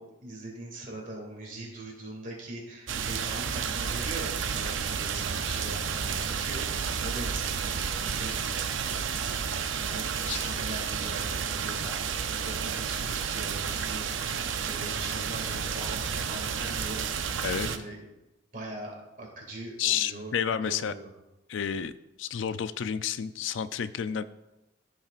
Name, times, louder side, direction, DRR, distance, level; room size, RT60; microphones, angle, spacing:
voice 1, 0.0-17.4 17.7-18.0 18.5-21.1, right 2 dB, 45° right, -1 dB, 2.2 m, -41 dB
sound 1, 2.9-17.8, right 6 dB, 80° right, 0.6 m, -31 dB
voice 2, 19.8-20.9 21.5-21.9 22.2-24.2, left 8 dB, 75° left, 14 dB, 0.4 m, -30 dB
14.5 x 6.0 x 2.5 m, 0.98 s
head